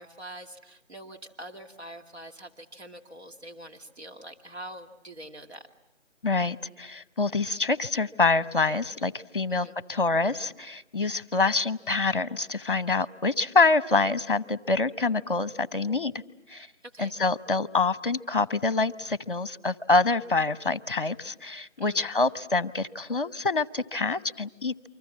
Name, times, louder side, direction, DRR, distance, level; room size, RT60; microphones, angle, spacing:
voice 1, 0.0-5.7 9.5-9.7 16.9-17.1 21.8-22.1, right 1 dB, 60° right, 3 dB, 2.4 m, -44 dB
voice 2, 6.2-16.1 16.5-16.7 17.0-24.7, left 3 dB, 45° left, 17 dB, 0.9 m, -26 dB
28.0 x 25.0 x 7.3 m, 0.90 s
figure-of-eight pair, 175°, 37 cm